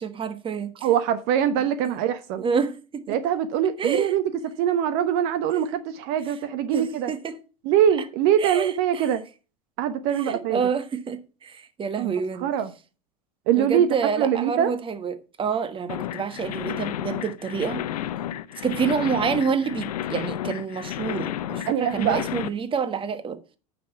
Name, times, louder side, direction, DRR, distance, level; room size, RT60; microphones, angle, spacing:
voice 1, 0.0-0.9 1.6-1.7 2.4-3.2 3.8-4.2 6.7-7.4 8.4-9.1 10.2-12.5 13.6-17.8 18.6-23.4, right 6 dB, 25° right, 1.4 m, -28 dB
voice 2, 0.8-2.4 3.1-4.2 4.6-7.1 7.6-9.2 9.8-10.6 12.0-12.1 12.4-12.7 13.5-13.9 14.2-14.7 21.7-22.2, right 9 dB, 60° right, 1.0 m, -23 dB
sound 1, 15.9-22.5, left 11 dB, 80° left, 0.7 m, -31 dB
9.4 x 6.0 x 5.7 m
hypercardioid pair, 90°, 19 cm